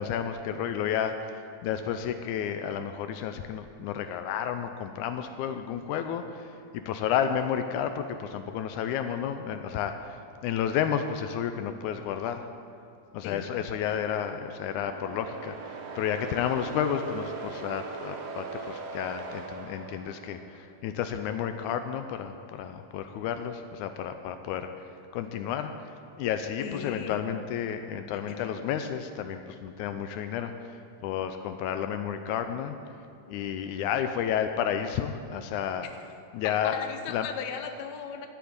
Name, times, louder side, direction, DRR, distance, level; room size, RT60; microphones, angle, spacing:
voice 1, 0.0-12.5 13.1-32.7 33.3-35.9 36.3-36.8 37.1-37.3, left 8 dB, 90° left, 8 dB, 1.7 m, -31 dB
sound 1, 13.7-20.6, right 4 dB, 70° right, 1.4 m, -40 dB
voice 2, 26.6-27.2 28.3-28.5 36.4-38.3, left 7 dB, 70° left, 6 dB, 1.7 m, -37 dB
14.0 x 6.0 x 9.7 m, 2.6 s
omnidirectional pair, 4.1 m